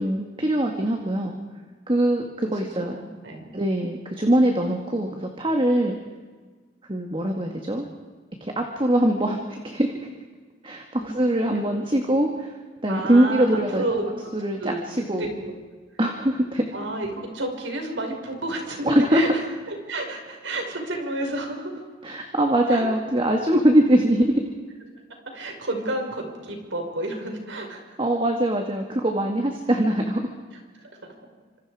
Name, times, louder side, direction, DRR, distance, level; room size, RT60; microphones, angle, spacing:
voice 1, 0.0-1.3 1.9-3.0 3.5-6.0 6.9-7.8 8.4-10.1 10.6-12.5 12.8-13.8 14.3-15.3 16.0-16.6 18.8-19.2 22.0-24.4 28.0-30.3, right 1 dB, 30° right, 3 dB, 1.9 m, -22 dB
voice 2, 2.5-3.5 11.0-11.1 11.5-11.8 12.9-14.1 14.6-14.8 15.1-15.5 16.7-19.4 19.7-21.8 22.7-22.9 25.3-28.0 30.8-30.9, right 1 dB, 90° right, 3 dB, 5.4 m, -31 dB
27.5 x 26.5 x 4.9 m, 1.4 s
head